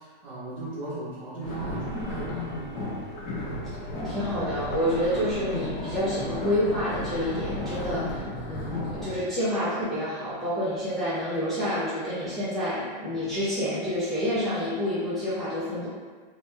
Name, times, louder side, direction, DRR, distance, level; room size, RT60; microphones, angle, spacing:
voice 1, 0.0-2.5, right 2 dB, 80° right, -11 dB, 1.1 m, -36 dB
sound 1, 1.4-9.2, left 1 dB, 45° left, 1.1 m, -33 dB
voice 2, 4.0-15.9, equal, ahead, -15 dB, 0.4 m, -28 dB
2.9 x 2.3 x 3.1 m, 1.5 s
supercardioid pair, 170°, 29 cm